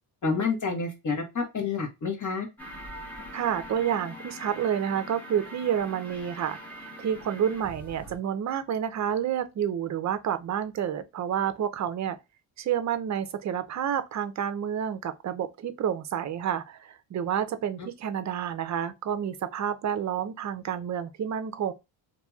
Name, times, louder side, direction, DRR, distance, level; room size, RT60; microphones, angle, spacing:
voice 1, 0.2-2.5, left 4 dB, 40° left, 1.2 m, -29 dB
sound 1, 2.6-8.2, equal, 5° left, 1.1 m, -43 dB
voice 2, 3.3-12.2 12.6-21.7, right 9 dB, 40° right, 0.5 m, -29 dB
2.9 x 2.6 x 2.3 m
cardioid pair, 90°, 46 cm